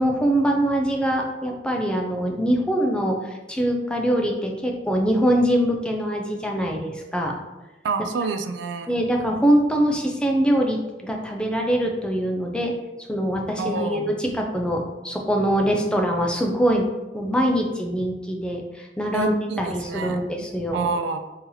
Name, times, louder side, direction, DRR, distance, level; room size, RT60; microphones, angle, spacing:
voice 1, 0.0-7.3 8.9-12.7 13.1-16.9 17.1-20.8, equal, 5° left, 1 dB, 0.4 m, -23 dB
voice 2, 7.8-9.0 13.6-14.1 19.1-21.2, right 4 dB, 80° right, 8 dB, 0.3 m, -28 dB
2.8 x 2.8 x 3.8 m, 1.1 s
head